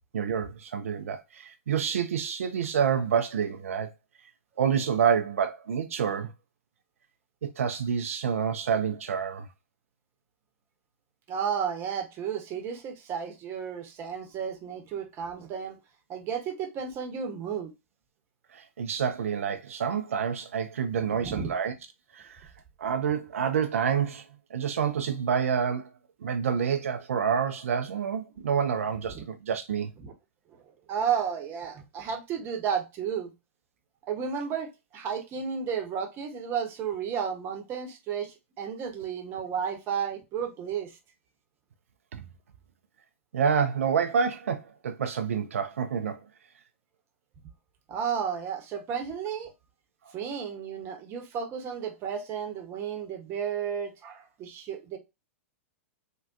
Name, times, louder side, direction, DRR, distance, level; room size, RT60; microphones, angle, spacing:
voice 1, 0.1-3.9 4.6-6.3 7.4-9.5 18.5-21.7 22.1-22.5 22.8-24.3 24.5-25.9 26.2-29.9 42.1-42.2 43.3-46.2, right 7 dB, 75° right, 0.4 m, -28 dB
voice 2, 11.3-15.8 16.1-17.7 21.0-21.5 29.1-29.2 30.0-30.1 30.9-33.3 34.1-40.9 47.9-49.5 50.1-55.0, right 7 dB, 35° right, 0.8 m, -33 dB
3.5 x 2.2 x 2.4 m
hypercardioid pair, 110°, 7 cm